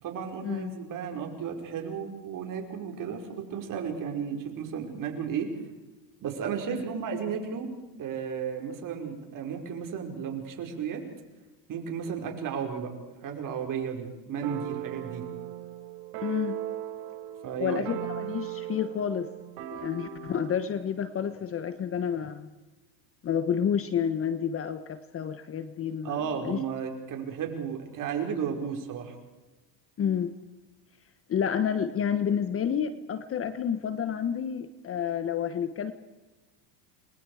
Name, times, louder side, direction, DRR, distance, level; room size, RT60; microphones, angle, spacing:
voice 1, 0.0-5.5 6.2-7.7 8.0-11.0 11.7-12.9 13.2-15.2 17.4-17.9 26.0-29.2, right 7 dB, 40° right, 3 dB, 5.4 m, -33 dB
sound 1, 14.4-20.7, right 11 dB, 75° right, 4.3 m, -38 dB
voice 2, 16.2-16.6 17.6-19.3 19.7-22.5 23.2-26.1 26.4-26.6 30.0-30.3 31.3-35.9, left 8 dB, 25° left, 11 dB, 1.2 m, -29 dB
29.5 x 22.0 x 5.0 m, 1.1 s
supercardioid pair, 120°, 49 cm